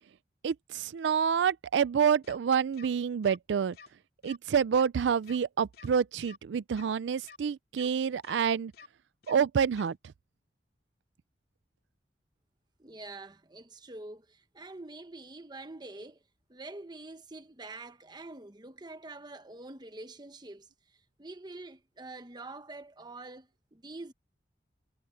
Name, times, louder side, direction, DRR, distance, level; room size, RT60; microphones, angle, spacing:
voice 1, 0.4-3.8 4.2-8.7 9.3-10.0, right 7 dB, 90° right, 0.4 m, -28 dB
sound 1, 2.2-2.4 2.7-2.9 3.2-3.4 3.7-3.9 4.2-4.4 4.7-4.9 5.2-5.4 5.7-5.9 6.2-6.4 6.7-6.9 7.2-7.4 7.7-7.9 8.2-8.4 8.7-8.9 9.2-9.4 9.7-9.9, left 6 dB, 60° left, 2.7 m, -51 dB
voice 2, 12.8-16.2 16.5-24.1, right 2 dB, 25° right, 1.1 m, -46 dB
head